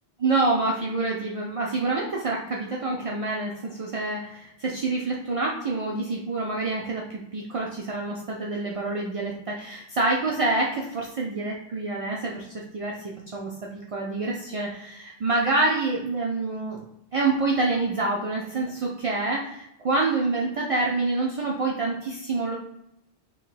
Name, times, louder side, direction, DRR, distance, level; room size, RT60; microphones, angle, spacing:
voice 1, 0.2-12.5 12.7-16.8 17.1-22.6, right 3 dB, 60° right, -2 dB, 0.3 m, -27 dB
3.6 x 3.1 x 2.4 m, 0.80 s
omnidirectional pair, 1.2 m